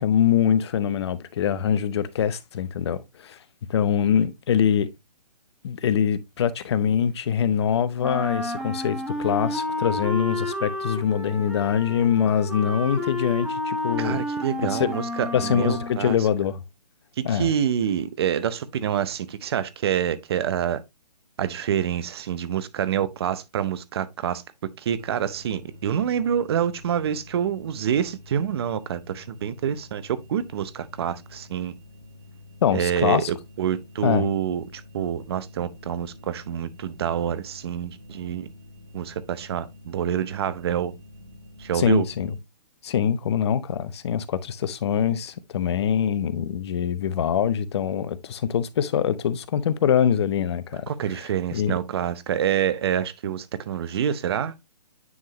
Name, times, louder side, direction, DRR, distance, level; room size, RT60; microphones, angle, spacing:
voice 1, 0.0-3.4 3.7-4.9 5.6-14.3 14.6-14.9 15.3-16.6 17.2-17.5 32.6-33.3 34.0-34.3 41.7-42.3 42.8-50.9 51.5-51.7, left 8 dB, 40° left, 0.7 m, -24 dB
Wind instrument woodwind instrument, 8.0-16.1, left 1 dB, 5° right, 0.9 m, -31 dB
voice 2, 14.0-16.2 17.2-20.8 21.4-24.4 24.8-31.7 32.7-33.2 33.6-38.5 38.9-40.9 41.6-42.1 50.9-54.5, right 9 dB, 35° right, 0.7 m, -27 dB
sound 1, 24.9-42.4, left 2 dB, 60° right, 3.3 m, -48 dB
9.5 x 3.7 x 2.8 m
hypercardioid pair, 150°, 21 cm